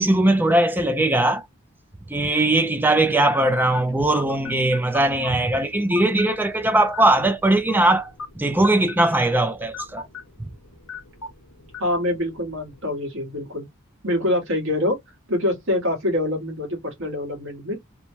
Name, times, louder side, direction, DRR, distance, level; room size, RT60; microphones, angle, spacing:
voice 1, 0.0-1.4 2.1-8.1 8.4-10.0 10.4-10.5, right 1 dB, 10° right, 0.3 m, -20 dB
sound 1, 3.3-12.8, left 4 dB, 80° left, 0.9 m, -40 dB
voice 2, 11.8-13.7 14.0-15.0 15.3-17.8, left 1 dB, 60° right, 1.3 m, -25 dB
2.9 x 2.1 x 2.9 m
head